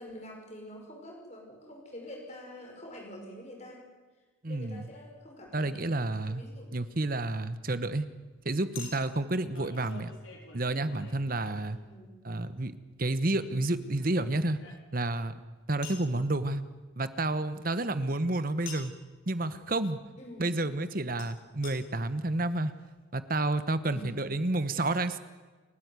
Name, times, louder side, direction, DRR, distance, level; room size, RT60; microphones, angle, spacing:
voice 1, 0.0-3.8 4.5-6.0 6.3-6.8 11.7-12.2 20.2-20.5 23.8-24.1, equal, 35° left, 1 dB, 5.8 m, -46 dB
voice 2, 4.4-4.9 5.5-6.4 6.7-8.1 8.4-10.1 10.5-11.8 12.2-12.7 13.0-14.6 14.9-15.3 15.7-16.6 17.0-18.9 19.3-20.0 20.4-22.7 23.1-25.2, right 2 dB, 45° right, 12 dB, 1.1 m, -30 dB
Chink clink, 5.9-6.1 8.8-11.9 13.5-15.2 15.8-16.1 18.7-19.0 21.2-21.3 21.6-21.8 22.4-22.5 22.7-22.8, left 5 dB, 75° left, 4.7 m, -48 dB
29.0 x 13.0 x 9.6 m, 1.3 s
head